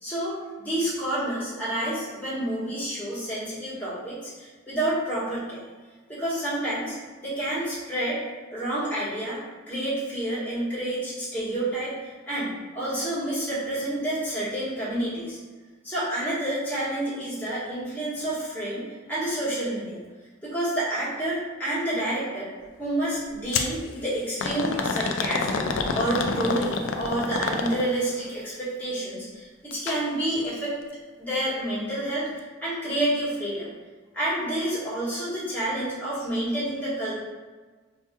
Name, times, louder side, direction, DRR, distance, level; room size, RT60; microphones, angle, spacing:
voice 1, 0.0-5.6 6.1-7.0 7.2-8.2 8.5-9.4 9.7-15.4 15.8-20.0 20.4-22.5 22.8-30.8 31.2-33.7 34.1-37.1, right 1 dB, 10° left, -10 dB, 1.3 m, -29 dB
Hits From The Bong, 23.5-23.8 24.4-28.1 29.7-30.0 30.4-30.5 31.3-31.4, left 4 dB, 75° left, 0.3 m, -27 dB
4.2 x 2.8 x 2.3 m, 1.3 s
head